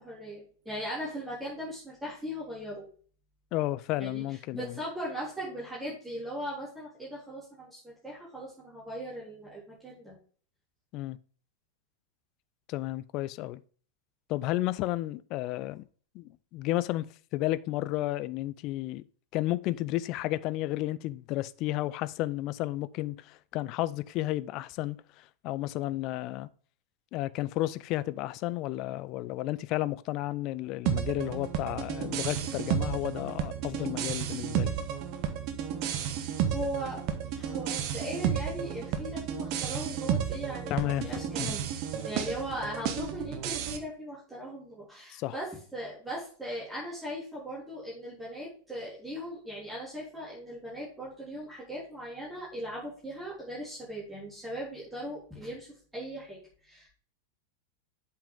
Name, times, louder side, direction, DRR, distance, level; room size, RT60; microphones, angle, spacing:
voice 1, 0.0-2.9 4.0-4.2 4.5-10.2 36.5-37.0 37.3-41.6 42.0-55.7 55.9-56.9, equal, 10° right, 3.5 m, -39 dB
voice 2, 3.5-4.7 10.9-11.2 12.7-13.6 14.3-15.8 16.1-19.0 19.3-26.5 27.1-34.7 40.7-41.6 45.1-45.3, left 16 dB, 40° left, 0.4 m, -32 dB
sound 1, 30.9-43.8, right 9 dB, 40° right, 1.0 m, -32 dB
8.1 x 5.7 x 3.7 m
figure-of-eight pair, 90°, 0 cm